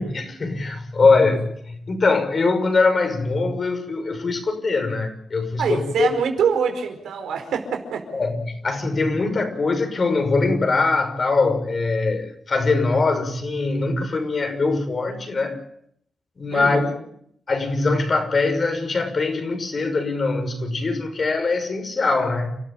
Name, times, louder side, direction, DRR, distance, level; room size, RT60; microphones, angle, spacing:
voice 1, 0.0-6.1 8.1-15.6 16.4-16.9 17.5-22.6, left 3 dB, 50° left, 7 dB, 6.1 m, -22 dB
voice 2, 5.6-8.1 16.5-16.9, right 7 dB, 90° right, 6 dB, 4.7 m, -24 dB
29.5 x 13.5 x 8.8 m, 0.70 s
cardioid pair, 70°, 0 cm